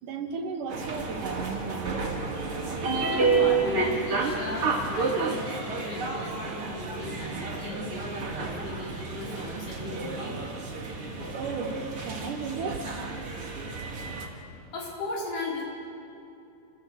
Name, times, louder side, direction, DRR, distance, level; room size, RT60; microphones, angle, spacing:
voice 1, 0.0-2.0 11.3-12.9, right 5 dB, 70° right, 4 dB, 3.0 m, -34 dB
sound 1, 0.7-14.3, right 4 dB, 40° right, 3.1 m, -30 dB
voice 2, 2.9-10.4 14.7-15.6, left 2 dB, 70° left, -4 dB, 6.8 m, -37 dB
28.5 x 16.5 x 7.9 m, 2.7 s
omnidirectional pair, 3.9 m